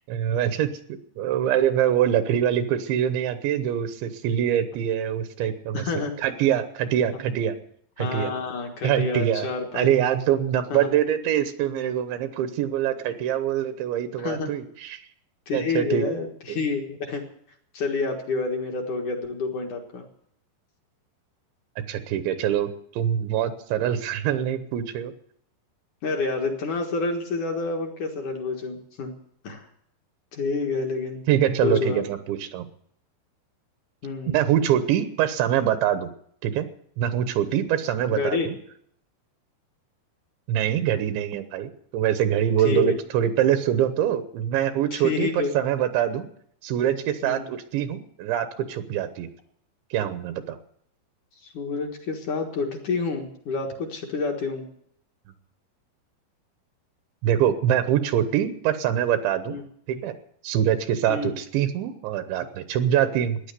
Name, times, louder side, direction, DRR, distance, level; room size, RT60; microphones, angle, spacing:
voice 1, 0.1-5.8 6.2-7.5 8.0-8.3 8.8-9.5 9.7-15.0 15.5-16.1 16.5-16.6 21.9-25.1 31.3-32.7 34.3-36.1 36.4-36.7 37.0-38.6 40.5-46.3 46.6-49.3 49.9-50.6 57.2-59.6 59.9-60.1 60.4-63.4, right 10 dB, 80° right, 10 dB, 3.2 m, -24 dB
voice 2, 5.7-6.2 8.0-10.0 10.7-10.9 14.2-14.5 15.5-17.2 17.7-20.1 26.0-29.1 29.4-29.7 30.3-31.2 31.6-32.0 34.0-34.4 38.1-38.5 42.6-42.9 44.9-45.5 47.2-47.5 51.4-54.7 59.5-59.6 61.1-61.3, left 4 dB, 55° left, 2 dB, 2.5 m, -28 dB
15.0 x 10.0 x 8.2 m, 0.67 s
omnidirectional pair, 5.2 m